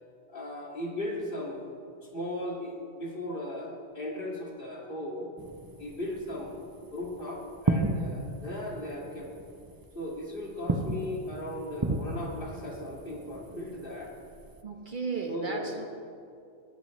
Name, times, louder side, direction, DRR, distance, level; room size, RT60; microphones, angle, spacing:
voice 1, 0.3-1.7 2.0-5.3 5.8-9.3 9.9-14.1 15.3-15.9, left 1 dB, 55° left, -2 dB, 2.4 m, -37 dB
sound 1, 5.4-14.6, right 2 dB, 25° right, 0.6 m, -35 dB
voice 2, 14.6-15.8, right 4 dB, 50° right, 2 dB, 1.4 m, -34 dB
19.5 x 14.5 x 3.2 m, 2.5 s
omnidirectional pair, 1.1 m